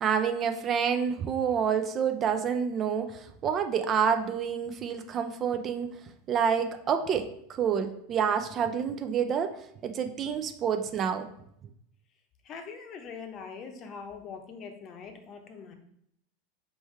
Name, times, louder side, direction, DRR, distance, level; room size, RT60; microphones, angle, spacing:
voice 1, 0.0-5.9 6.3-7.3 7.6-9.6 9.8-11.3, right 7 dB, 35° right, 8 dB, 0.4 m, -28 dB
voice 2, 12.4-15.7, left 5 dB, 40° left, 5 dB, 0.7 m, -42 dB
4.3 x 3.2 x 3.2 m, 0.73 s
hypercardioid pair, 95°, 0 cm